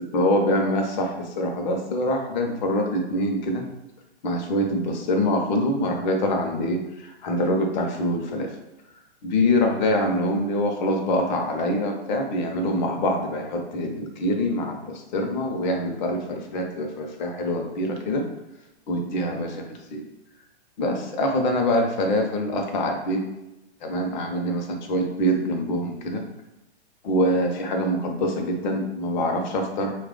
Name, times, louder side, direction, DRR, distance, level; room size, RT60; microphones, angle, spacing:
voice 1, 0.1-3.7 4.2-8.5 9.2-18.2 18.9-20.0 20.8-23.3 23.8-26.2 27.0-29.9, left 1 dB, 40° left, 3 dB, 0.7 m, -25 dB
2.9 x 2.4 x 3.7 m, 0.93 s
hypercardioid pair, 140°, 33 cm